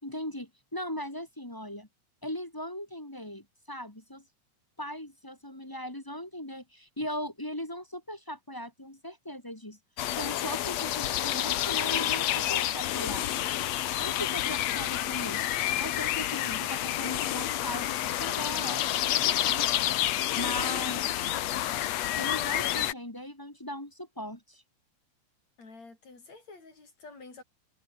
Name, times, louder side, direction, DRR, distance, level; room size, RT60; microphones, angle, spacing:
voice 1, 0.0-1.9 2.2-4.2 4.8-9.8 10.2-13.3 14.0-15.5 15.8-19.8 20.1-21.0 22.2-24.6, equal, 10° left, 1.2 m, -39 dB
sound 1, 10.0-22.9, left 13 dB, 70° left, 1.7 m, -29 dB
voice 2, 25.6-27.4, left 3 dB, 45° left, 7.0 m, -49 dB
omnidirectional pair, 4.4 m